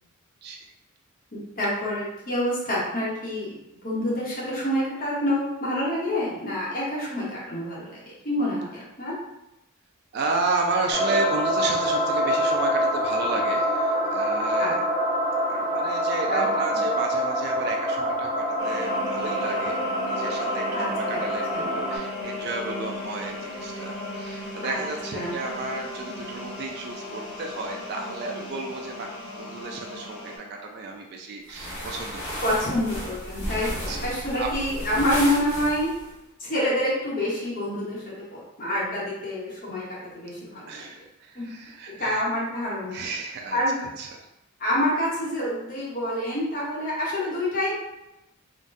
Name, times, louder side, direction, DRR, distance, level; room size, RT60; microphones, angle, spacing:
voice 1, 1.3-3.5 3.8-9.1 14.6-14.7 16.3-16.4 20.7-21.2 21.5-21.7 24.6-24.8 25.1-25.3 32.4-35.9 36.4-40.9 41.3-41.4 42.0-43.0 43.5-43.8 44.6-47.7, left 1 dB, 40° left, -6 dB, 0.8 m, -27 dB
voice 2, 10.1-14.8 15.5-32.4 33.9-34.5 40.7-42.2 42.9-44.2, right 3 dB, 45° right, 1 dB, 0.3 m, -32 dB
sound 1, 10.9-22.0, equal, 5° right, 1.0 m, -26 dB
sound 2, 18.6-30.4, left 1 dB, 60° left, 1.1 m, -36 dB
sound 3, 31.5-36.1, equal, 85° left, 1.2 m, -34 dB
3.8 x 2.1 x 2.5 m, 0.89 s
head